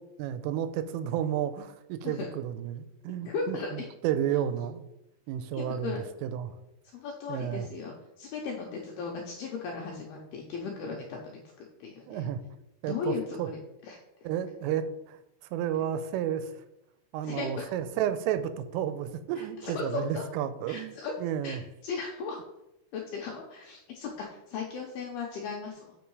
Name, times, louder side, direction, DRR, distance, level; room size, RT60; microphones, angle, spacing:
voice 1, 0.2-4.9 5.3-6.6 7.3-7.7 12.1-12.4 12.8-13.5 14.2-15.2 15.5-16.6 17.1-20.9 21.2-21.6, right 10 dB, 85° right, 11 dB, 3.1 m, -32 dB
voice 2, 3.3-3.9 5.5-6.1 6.9-11.4 11.8-12.3 12.9-14.0 17.2-17.7 19.4-20.2 20.7-21.1 21.4-21.6 21.8-22.4 22.9-26.0, left 4 dB, 90° left, -1 dB, 2.2 m, -36 dB
7.0 x 6.4 x 4.7 m, 0.88 s
omnidirectional pair, 5.7 m